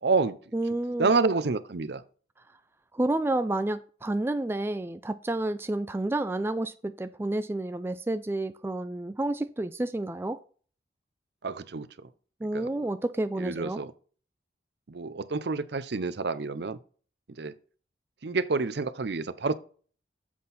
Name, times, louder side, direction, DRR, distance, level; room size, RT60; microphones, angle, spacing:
voice 1, 0.0-0.4 1.0-2.0 11.4-11.9 12.5-12.7 13.4-13.9 14.9-16.8 17.4-17.5 18.2-19.6, right 4 dB, 65° right, 0.6 m, -28 dB
voice 2, 0.5-1.1 2.9-10.4 12.4-13.8, right 2 dB, 15° right, 0.3 m, -30 dB
7.5 x 6.0 x 4.1 m
head